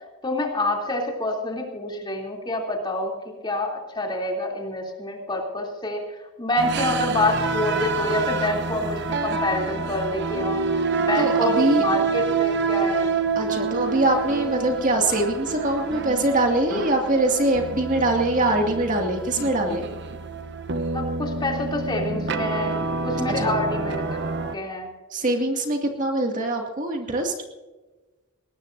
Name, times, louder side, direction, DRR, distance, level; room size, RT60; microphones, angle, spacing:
voice 1, 0.2-3.1 3.4-6.0 6.4-10.6 11.0-13.2 20.9-24.9, left 1 dB, 20° left, 0 dB, 3.1 m, -27 dB
sound 1, 6.6-24.6, right 4 dB, 55° right, 0.9 m, -27 dB
voice 2, 11.2-11.8 13.4-19.9 23.3-23.6 25.1-27.3, right 1 dB, 35° right, 2 dB, 2.2 m, -23 dB
21.0 x 19.0 x 2.7 m, 1.2 s
head